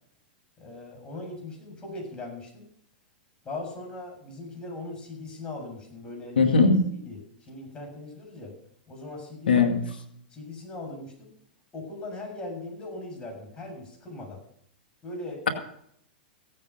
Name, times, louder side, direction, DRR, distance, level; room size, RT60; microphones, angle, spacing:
voice 1, 0.6-2.7 3.4-6.5 6.9-8.5 8.9-9.7 10.3-11.3 11.7-14.4 15.0-15.5, left 2 dB, 20° left, -1 dB, 7.1 m, -39 dB
voice 2, 6.4-6.9 9.5-9.8, left 4 dB, 90° left, 5 dB, 2.2 m, -19 dB
16.5 x 8.9 x 5.7 m, 0.68 s
hypercardioid pair, 115°, 5 cm